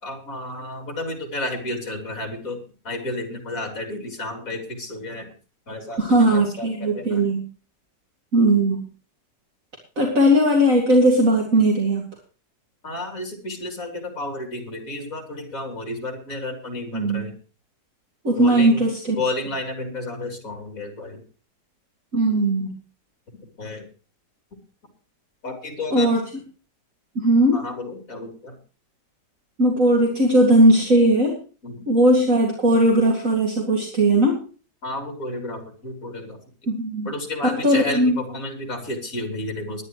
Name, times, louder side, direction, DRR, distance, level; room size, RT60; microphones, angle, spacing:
voice 1, 0.0-5.3 5.7-7.3 12.8-17.3 18.4-18.8 19.2-21.2 23.6-23.9 25.4-26.2 27.5-28.6 31.6-31.8 34.8-36.4 37.0-39.8, left 2 dB, 50° left, 3 dB, 4.0 m, -31 dB
voice 2, 6.0-7.4 8.3-8.8 10.0-12.0 16.9-17.3 18.2-19.2 22.1-22.7 25.9-26.2 27.2-27.6 29.6-31.4 31.9-34.4 36.7-37.1 37.6-38.2, right 1 dB, 50° right, -1 dB, 2.8 m, -18 dB
20.0 x 10.5 x 3.2 m, 0.36 s
omnidirectional pair, 1.8 m